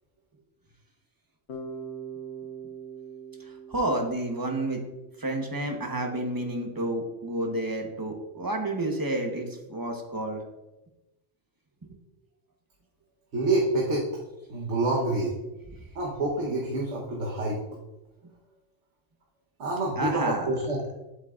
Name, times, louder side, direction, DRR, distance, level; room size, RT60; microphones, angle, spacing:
Bass guitar, 1.5-5.4, right 5 dB, 65° left, 1.1 m, -42 dB
voice 1, 3.7-4.8 5.2-10.4 11.8-11.9 20.0-20.5, right 1 dB, 20° right, 2 dB, 0.9 m, -30 dB
voice 2, 13.3-14.1 14.5-15.3 15.9-17.6 19.6-20.9, right 2 dB, 70° right, -3 dB, 1.4 m, -27 dB
8.3 x 7.9 x 2.5 m, 1.0 s
omnidirectional pair, 1.2 m